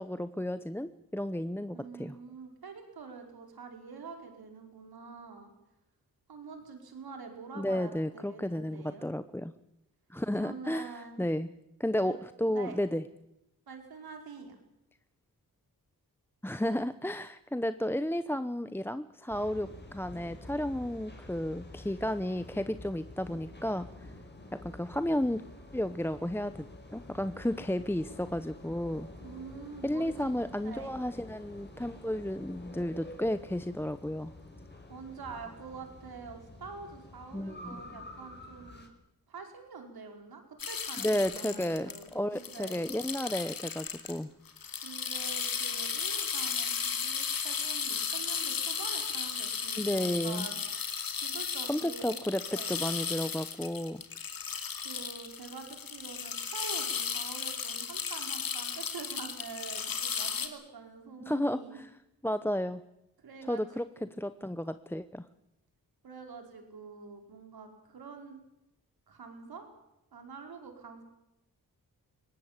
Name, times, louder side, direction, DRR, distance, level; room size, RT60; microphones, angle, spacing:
voice 1, 0.0-2.2 7.6-9.5 10.1-11.5 11.8-13.0 16.4-23.9 24.5-25.4 25.7-26.7 26.9-29.1 29.8-34.3 37.3-37.8 41.0-44.3 49.8-50.5 51.7-54.0 61.3-61.9 62.2-62.8 63.5-65.2, left 1 dB, 5° left, 12 dB, 0.8 m, -32 dB
voice 2, 1.7-5.5 6.3-9.1 10.4-11.2 12.0-12.2 12.5-12.8 13.7-14.5 29.2-30.3 30.6-30.9 34.9-38.9 39.3-42.9 44.8-50.6 51.1-52.2 52.5-52.7 54.8-61.8 63.2-64.1 66.0-68.4 69.1-69.7 70.1-71.0, right 5 dB, 80° right, 4 dB, 4.9 m, -46 dB
sound 1, 19.3-38.9, left 1 dB, 30° left, 4.9 m, -49 dB
sound 2, 40.6-44.2 44.5-60.5, left 6 dB, 70° left, 2.7 m, -35 dB
22.5 x 18.5 x 8.9 m, 0.85 s
cardioid pair, 80°, 36 cm